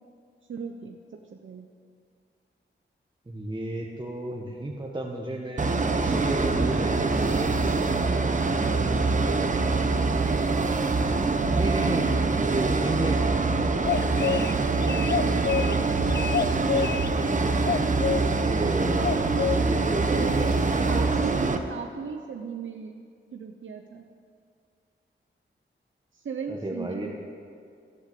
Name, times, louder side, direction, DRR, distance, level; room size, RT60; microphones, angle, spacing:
voice 1, 0.5-1.7 8.6-9.0 14.7-16.3 20.1-22.9 23.3-24.1 26.1-27.1, right 5 dB, 75° right, 4 dB, 0.9 m, -37 dB
voice 2, 3.3-7.8 11.5-13.8 18.3-21.3 26.5-27.1, right 1 dB, 20° right, -2 dB, 1.5 m, -33 dB
sound 1, 5.6-21.6, right 3 dB, 40° right, 1.1 m, -24 dB
sound 2, 13.8-14.5 14.8-15.8 16.1-17.1 17.6-18.2 19.0-19.6, left 7 dB, 60° left, 0.6 m, -27 dB
13.5 x 11.5 x 8.6 m, 2.3 s
wide cardioid pair, 90°, 20 cm